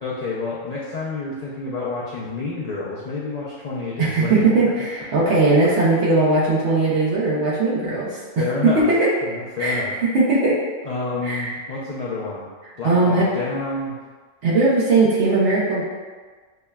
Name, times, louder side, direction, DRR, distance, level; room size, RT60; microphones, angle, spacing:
voice 1, 0.0-4.7 8.4-8.9 9.2-9.9 10.8-12.5 12.8-14.0, left 3 dB, 70° left, -6 dB, 0.3 m, -29 dB
voice 2, 4.0-8.2 8.8-9.1 9.6-10.6 11.2-11.5 12.8-13.3 14.4-15.8, right 2 dB, 65° right, -6 dB, 0.9 m, -19 dB
5.5 x 2.1 x 2.2 m, 1.5 s
omnidirectional pair, 1.3 m